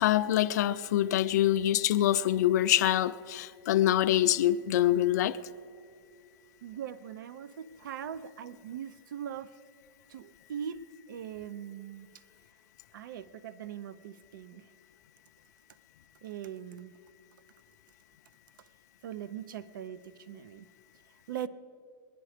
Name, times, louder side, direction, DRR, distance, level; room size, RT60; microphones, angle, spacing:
voice 1, 0.0-5.4, left 12 dB, 50° left, 0.4 m, -25 dB
voice 2, 6.6-9.5 10.1-12.1 12.9-14.7 16.2-16.9 19.0-20.7 21.3-21.5, right 9 dB, 70° right, 0.6 m, -41 dB
21.0 x 11.0 x 5.0 m
supercardioid pair, 170°, 11 cm